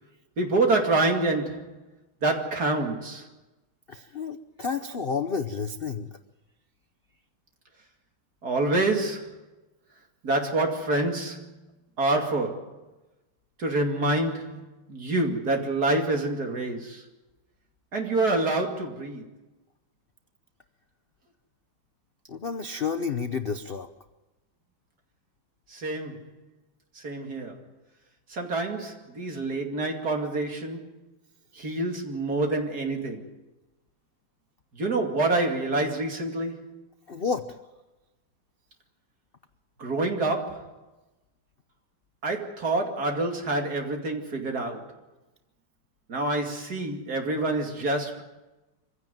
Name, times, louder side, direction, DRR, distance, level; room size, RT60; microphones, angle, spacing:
voice 1, 0.4-1.7 2.2-3.3 8.4-9.4 10.2-11.5 12.0-12.7 13.6-17.0 17.9-19.2 25.7-26.3 27.0-27.6 28.3-31.0 31.5-33.2 34.7-36.8 39.8-40.7 42.2-44.9 46.1-48.2, right 2 dB, 45° right, 2.9 m, -27 dB
voice 2, 3.9-6.1 22.3-23.9 37.1-37.6, left 5 dB, 70° left, 0.5 m, -30 dB
24.5 x 16.0 x 9.2 m
omnidirectional pair, 2.3 m